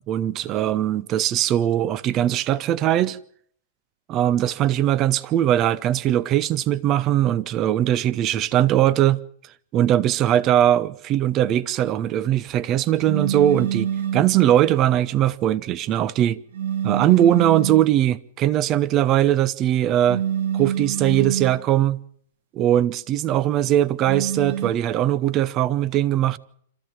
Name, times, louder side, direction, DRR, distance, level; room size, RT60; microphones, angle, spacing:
voice 1, 0.1-3.2 4.1-9.2 9.7-16.4 16.8-20.2 20.5-22.0 22.5-26.4, right 12 dB, 35° right, 0.8 m, -20 dB
sound 1, 13.0-14.4 16.5-17.9 20.1-21.6 24.0-24.7, right 9 dB, 75° right, 2.2 m, -26 dB
26.5 x 14.0 x 7.5 m
hypercardioid pair, 125°, 0 cm